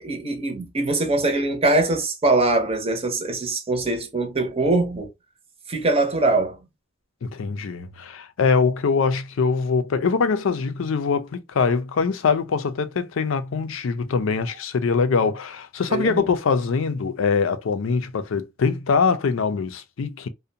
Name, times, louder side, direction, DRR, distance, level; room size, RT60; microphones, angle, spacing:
voice 1, 0.0-5.1 5.7-6.6 15.9-16.3, right 2 dB, 30° right, 0.7 m, -22 dB
voice 2, 7.2-20.3, left 5 dB, 80° left, 0.4 m, -23 dB
2.5 x 2.1 x 2.7 m
head